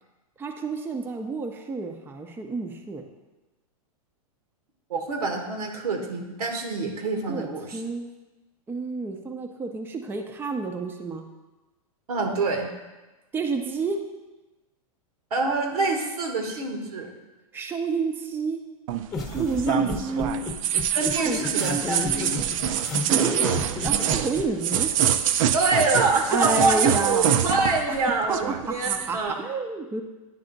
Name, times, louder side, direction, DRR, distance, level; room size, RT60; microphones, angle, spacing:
voice 1, 0.4-3.1 7.3-8.1 8.7-11.3 13.3-14.0 17.5-18.6 19.3-20.4 21.1-22.4 23.1-24.9 26.3-27.3 27.9-30.0, right 4 dB, 10° right, 3 dB, 0.5 m, -30 dB
voice 2, 4.9-7.8 12.1-12.7 15.3-17.1 19.8-20.1 20.9-22.4 25.5-29.4, right 3 dB, 85° right, 3 dB, 1.4 m, -26 dB
sound 1, 18.9-28.0 28.2-29.1, right 10 dB, 60° right, 0.5 m, -25 dB
sound 2, 19.1-24.4, left 4 dB, 15° left, 1.0 m, -32 dB
10.0 x 3.4 x 3.9 m, 1.1 s
hypercardioid pair, 125°, 19 cm